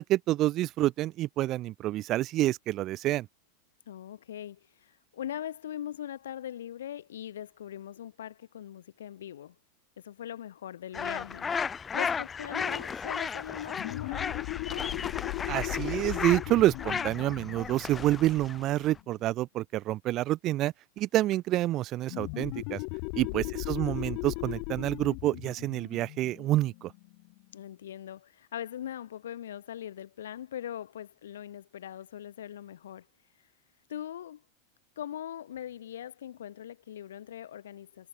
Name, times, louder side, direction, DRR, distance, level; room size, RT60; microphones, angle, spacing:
voice 1, 0.0-3.3 15.5-22.8 23.1-26.9, right 15 dB, 40° right, 0.6 m, -28 dB
voice 2, 3.9-9.6 10.0-11.5 11.9-14.9 23.2-23.6 27.5-33.1 33.9-34.4 35.0-38.1, left 10 dB, 80° left, 6.0 m, -41 dB
sound 1, 10.9-19.0, left 6 dB, 20° left, 1.2 m, -35 dB
sound 2, 13.7-19.0 22.1-27.4, left 40 dB or more, 55° left, 2.0 m, -37 dB
hypercardioid pair, 110°, 0 cm